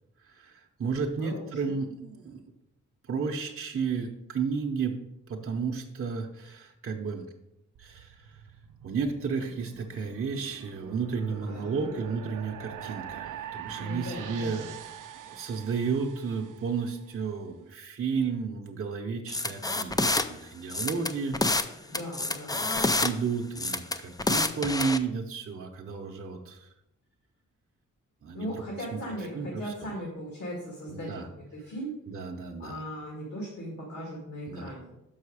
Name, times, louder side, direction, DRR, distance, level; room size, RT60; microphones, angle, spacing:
voice 1, 0.2-2.4 3.1-5.0 5.3-7.3 7.8-8.4 8.8-14.7 15.1-21.8 22.5-22.7 23.0-26.7 28.2-28.5 28.9-29.0 29.3-29.7 30.9-31.3 32.1-32.8 34.5-34.7, right 5 dB, 45° right, 1 dB, 0.7 m, -32 dB
voice 2, 1.2-1.5 11.5-11.9 13.8-14.7 21.9-23.0 28.3-31.1 31.4-31.9 32.6-35.0, equal, 70° left, -3 dB, 2.1 m, -38 dB
sound 1, 7.7-17.1, right 10 dB, 80° right, 0.5 m, -44 dB
sound 2, 19.3-20.2 20.7-21.7 21.9-23.1 23.6-25.0, left 2 dB, 15° left, 0.3 m, -27 dB
6.4 x 5.6 x 4.8 m, 0.87 s
wide cardioid pair, 100°, 31 cm